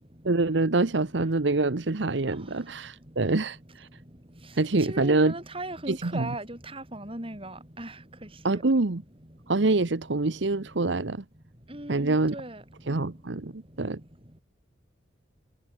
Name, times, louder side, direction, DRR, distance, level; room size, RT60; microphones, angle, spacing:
voice 1, 0.2-3.9 4.5-5.3 5.9-6.3 8.4-9.0 9.5-11.2 11.9-12.3 12.9-14.0, right 3 dB, 65° right, 1.0 m, -25 dB
voice 2, 4.9-7.9 8.5-8.6 11.7-12.6, right 1 dB, 30° right, 5.6 m, -37 dB
head